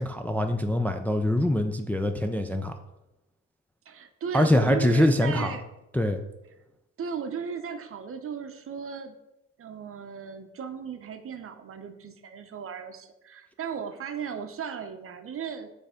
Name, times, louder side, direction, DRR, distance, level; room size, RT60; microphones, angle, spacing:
voice 1, 0.0-2.8 4.3-5.6 5.9-6.2, left 1 dB, 5° left, 5 dB, 0.3 m, -24 dB
voice 2, 3.9-5.7 7.0-9.2 9.6-15.7, right 7 dB, 45° right, 8 dB, 0.7 m, -36 dB
6.5 x 3.4 x 5.0 m, 0.94 s
cardioid pair, 90°, 30 cm